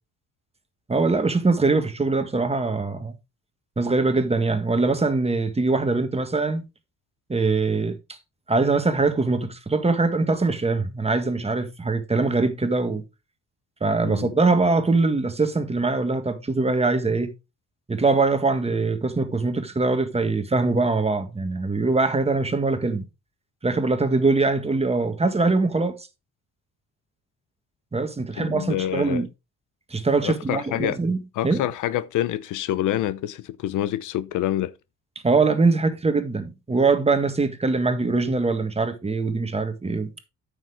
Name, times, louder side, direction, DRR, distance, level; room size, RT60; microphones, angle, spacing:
voice 1, 0.9-3.2 3.8-6.6 7.3-8.0 8.5-13.0 13.8-17.3 17.9-23.1 23.6-26.0 27.9-29.3 29.9-31.2 31.4-31.6 35.2-40.1, right 3 dB, 20° right, 1.6 m, -22 dB
voice 2, 28.4-29.2 30.2-31.0 31.4-34.7, left 13 dB, 80° left, 0.7 m, -27 dB
9.1 x 6.7 x 3.5 m
cardioid pair, 90°, 30 cm